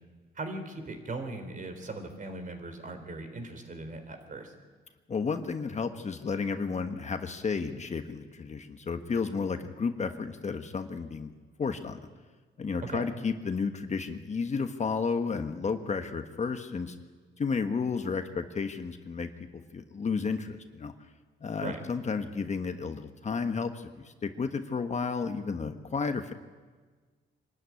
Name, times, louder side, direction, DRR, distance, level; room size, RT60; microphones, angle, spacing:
voice 1, 0.3-4.5 12.9-13.0 21.6-21.8, right 2 dB, 40° right, 7 dB, 3.8 m, -39 dB
voice 2, 5.1-11.3 11.6-12.0 12.6-16.9 17.4-20.9 21.4-26.3, left 5 dB, 35° left, 7 dB, 1.3 m, -32 dB
25.0 x 13.0 x 9.7 m, 1.4 s
cardioid pair, 90°, 20 cm